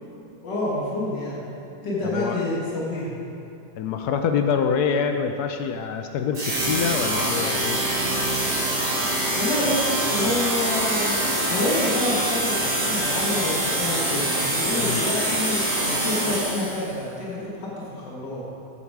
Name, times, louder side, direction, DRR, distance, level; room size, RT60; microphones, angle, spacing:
voice 1, 0.4-1.4 1.8-3.1 9.3-18.5, left 1 dB, 90° left, -5 dB, 2.2 m, -28 dB
voice 2, 2.0-2.4 3.8-7.8 14.8-15.0, left 6 dB, 75° left, 6 dB, 1.1 m, -25 dB
sound 1, 6.3-16.9, right 1 dB, 50° right, 2.2 m, -25 dB
sound 2, 7.0-16.4, equal, 15° right, 2.3 m, -32 dB
8.8 x 8.4 x 4.7 m, 2.9 s
omnidirectional pair, 1.8 m